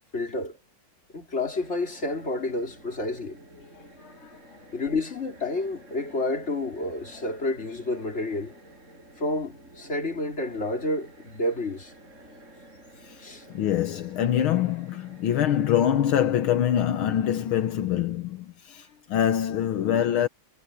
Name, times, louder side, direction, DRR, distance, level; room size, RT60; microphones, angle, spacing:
voice 1, 0.1-0.6 1.1-3.4 4.7-8.6 9.2-11.9 13.2-13.4, left 2 dB, 30° left, 3.7 m, -30 dB
sound 1, 1.5-16.1, right 1 dB, 35° right, 6.1 m, -51 dB
voice 2, 4.0-4.3 13.0-13.2 13.5-20.3, left 10 dB, 75° left, 1.8 m, -25 dB
omnidirectional pair, 2.3 m